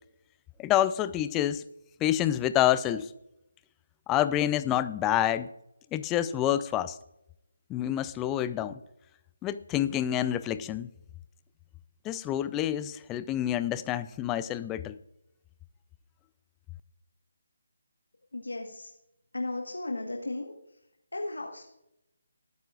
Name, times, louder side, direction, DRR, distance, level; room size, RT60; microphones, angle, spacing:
voice 1, 0.6-1.6 2.0-3.1 4.1-5.5 5.9-7.0 7.7-8.8 9.4-10.9 12.0-15.0, left 12 dB, 15° left, 14 dB, 0.4 m, -27 dB
voice 2, 18.3-18.9 19.3-20.6 21.1-21.6, left 2 dB, 85° left, 2 dB, 1.4 m, -35 dB
19.5 x 9.2 x 2.4 m, 0.86 s
figure-of-eight pair, 155°, 0 cm